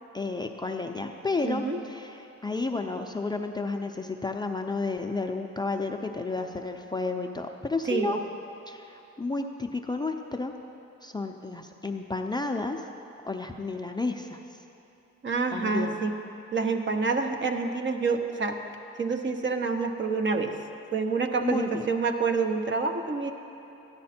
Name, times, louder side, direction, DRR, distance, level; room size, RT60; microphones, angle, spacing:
voice 1, 0.1-8.2 8.7-10.5 11.0-12.8 13.2-14.4 15.5-16.0 21.4-21.9, left 3 dB, 15° left, 3 dB, 0.5 m, -32 dB
voice 2, 1.4-1.8 7.9-8.2 15.2-16.1 16.5-18.6 19.0-20.5 20.9-23.3, right 4 dB, 40° right, 5 dB, 0.9 m, -27 dB
13.5 x 10.5 x 4.4 m, 2.9 s
cardioid pair, 90°, 30 cm